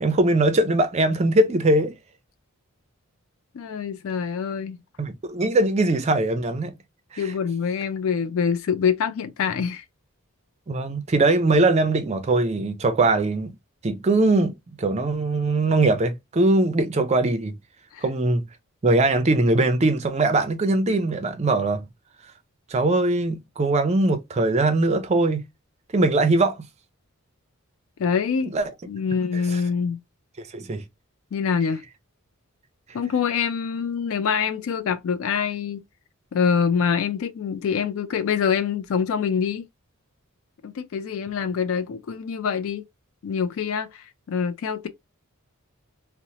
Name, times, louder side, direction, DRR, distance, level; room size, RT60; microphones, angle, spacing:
voice 1, 0.0-2.0 5.0-6.7 7.1-7.3 10.7-13.5 13.8-17.6 18.0-18.5 18.8-21.9 22.7-25.4 25.9-26.6 28.5-28.6 30.5-30.8, right 2 dB, 30° right, 0.4 m, -21 dB
voice 2, 3.5-4.8 7.2-9.8 17.9-18.0 28.0-28.5 28.9-30.0 31.3-31.8 32.9-35.8 36.3-39.7 40.6-42.8 43.2-44.9, left 6 dB, 65° left, 0.3 m, -25 dB
2.8 x 2.0 x 2.7 m
head